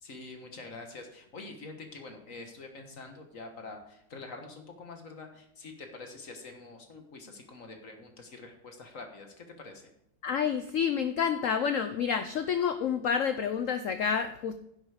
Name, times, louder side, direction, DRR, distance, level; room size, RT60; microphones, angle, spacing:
voice 1, 0.0-9.9, left 3 dB, 45° left, 4 dB, 1.6 m, -46 dB
voice 2, 10.2-14.6, left 7 dB, 75° left, 9 dB, 0.7 m, -29 dB
10.5 x 8.0 x 4.9 m, 0.76 s
omnidirectional pair, 2.0 m